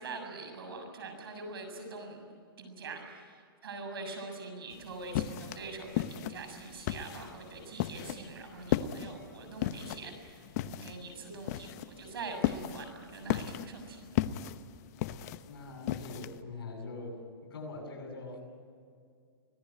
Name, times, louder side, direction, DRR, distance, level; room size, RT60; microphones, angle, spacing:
voice 1, 0.0-14.2, right 3 dB, 75° right, 5 dB, 7.0 m, -44 dB
sound 1, 4.7-16.4, left 13 dB, 45° left, 1.0 m, -35 dB
voice 2, 15.5-18.4, left 3 dB, 70° left, 2 dB, 7.9 m, -43 dB
25.5 x 18.5 x 9.1 m, 2.2 s
hypercardioid pair, 135°, 13 cm